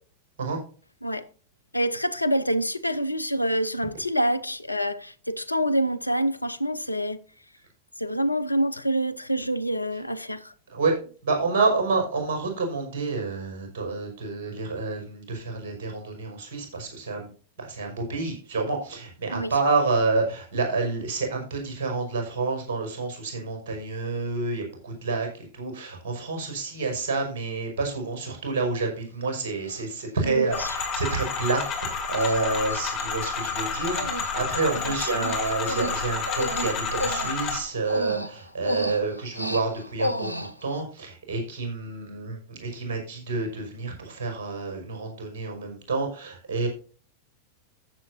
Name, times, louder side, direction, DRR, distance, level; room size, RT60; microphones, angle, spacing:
voice 1, 1.7-7.2 8.0-10.5 19.3-19.5 30.2-30.8 34.8-35.3, equal, 85° left, 0.7 m, -27 dB
voice 2, 10.7-17.3 17.6-25.3 25.5-46.7, right 3 dB, 55° right, 5.3 m, -28 dB
Human voice, 28.8-28.9 29.7-30.0 30.6-30.7 31.0-31.3 31.6-31.7 32.1-32.4 32.7-33.7 34.0-34.3 34.5-40.8, equal, 90° right, 0.8 m, -33 dB
sound 1, 30.5-37.6, left 5 dB, 35° left, 3.3 m, -30 dB
14.5 x 7.6 x 2.7 m
figure-of-eight pair, 90°, 0 cm